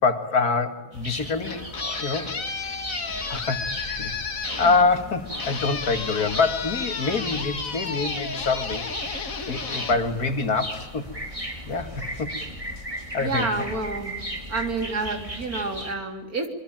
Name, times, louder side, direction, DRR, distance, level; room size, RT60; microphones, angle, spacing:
voice 1, 0.0-2.4 3.3-4.1 4.6-8.9 9.5-11.1 11.7-12.4 13.1-13.5, left 4 dB, 80° left, 7 dB, 2.7 m, -25 dB
sound 1, 0.9-15.9, right 1 dB, 20° right, 4.1 m, -37 dB
sound 2, 1.2-10.9, left 4 dB, 60° left, 2.3 m, -33 dB
sound 3, 3.1-15.2, left 3 dB, ahead, 3.2 m, -46 dB
voice 2, 13.2-14.2 14.5-16.5, right 3 dB, 70° right, 5 dB, 3.8 m, -29 dB
25.5 x 23.0 x 8.9 m, 1.0 s
omnidirectional pair, 1.6 m